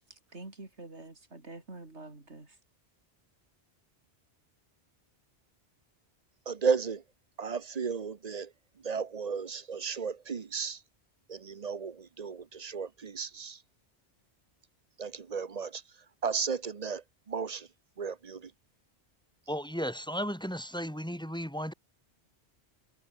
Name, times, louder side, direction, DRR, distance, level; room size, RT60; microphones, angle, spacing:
voice 1, 0.0-2.6, right 2 dB, 85° right, 4.2 m, -47 dB
voice 2, 6.5-7.0 7.4-8.5 8.8-10.8 11.3-13.6 15.0-15.7 16.2-17.0 17.3-17.7 18.0-18.4, right 5 dB, 40° right, 0.8 m, -33 dB
voice 3, 19.5-21.7, equal, 5° left, 4.9 m, -35 dB
omnidirectional pair, 1.1 m